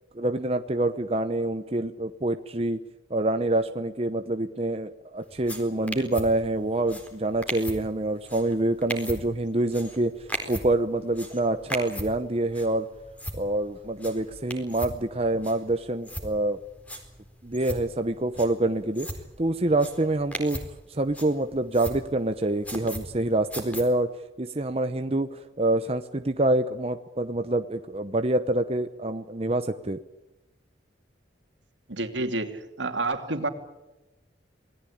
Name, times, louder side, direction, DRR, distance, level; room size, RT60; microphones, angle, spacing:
voice 1, 0.1-2.8 3.1-12.9 13.3-16.6 17.4-19.1 19.4-30.0, right 2 dB, 30° right, 8 dB, 0.8 m, -26 dB
sound 1, 5.3-23.8, equal, 5° left, 4.2 m, -39 dB
voice 2, 31.9-33.5, right 2 dB, 75° right, 6 dB, 2.8 m, -29 dB
27.5 x 18.5 x 8.7 m, 1.1 s
head